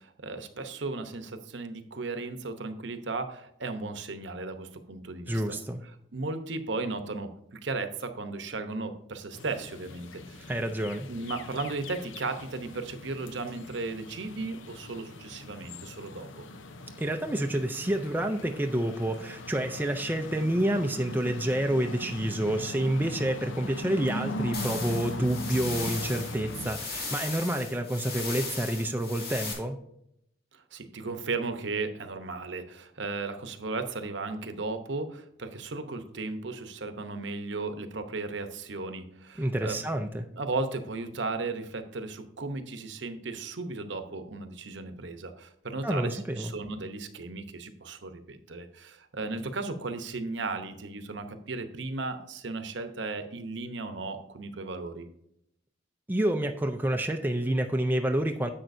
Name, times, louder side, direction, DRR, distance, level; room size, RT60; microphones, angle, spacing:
voice 1, 0.0-5.4 6.1-10.5 11.1-16.5 30.5-39.8 40.3-55.1, right 3 dB, 65° right, 8 dB, 0.8 m, -35 dB
voice 2, 5.3-5.8 10.5-11.1 17.0-29.8 39.4-40.3 45.8-46.5 56.1-58.5, right 1 dB, 10° right, 4 dB, 0.4 m, -28 dB
sound 1, 9.3-26.7, left 1 dB, 75° left, 0.7 m, -40 dB
sound 2, 24.5-29.5, left 3 dB, 50° left, 2.5 m, -37 dB
10.5 x 7.5 x 2.6 m, 0.76 s
head